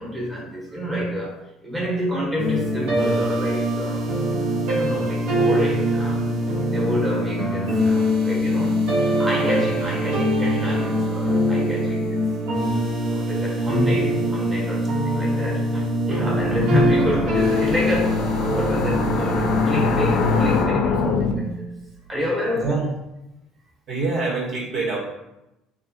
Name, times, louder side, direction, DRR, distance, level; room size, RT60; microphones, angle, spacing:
voice 1, 0.0-4.1 4.7-6.3 6.7-8.9 9.2-12.2 13.1-21.8 22.1-22.8, left 1 dB, 15° right, -3 dB, 0.8 m, -28 dB
sound 1, 2.4-20.6, equal, 75° right, 0.7 m, -23 dB
sound 2, 16.4-21.3, left 5 dB, 65° left, 0.4 m, -24 dB
voice 2, 22.5-22.9 23.9-25.0, right 3 dB, 50° right, -2 dB, 0.9 m, -25 dB
3.5 x 2.4 x 2.6 m, 0.90 s
supercardioid pair, 95°, 0 cm